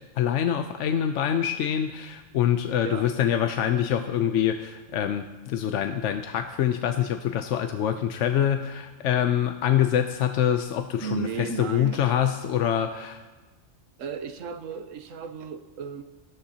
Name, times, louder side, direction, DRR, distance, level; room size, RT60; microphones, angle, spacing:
voice 1, 0.2-13.2, left 9 dB, 75° left, 7 dB, 0.9 m, -25 dB
voice 2, 2.8-3.1 11.0-12.2 14.0-16.0, right 6 dB, 85° right, 9 dB, 1.2 m, -34 dB
18.0 x 13.0 x 2.8 m, 1.2 s
omnidirectional pair, 1.3 m